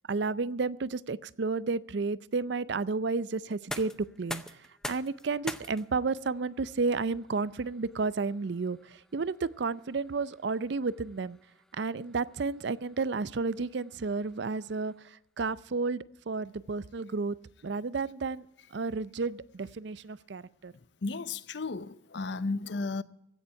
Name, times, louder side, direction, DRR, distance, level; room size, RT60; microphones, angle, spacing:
voice 1, 0.1-11.4 11.7-17.4 17.6-18.5 18.7-20.7, right 4 dB, 60° right, 0.5 m, -32 dB
sound 1, 3.4-15.2, left 1 dB, 5° left, 0.6 m, -47 dB
voice 2, 20.7-23.0, left 3 dB, 60° left, 0.6 m, -34 dB
16.0 x 7.2 x 9.5 m
head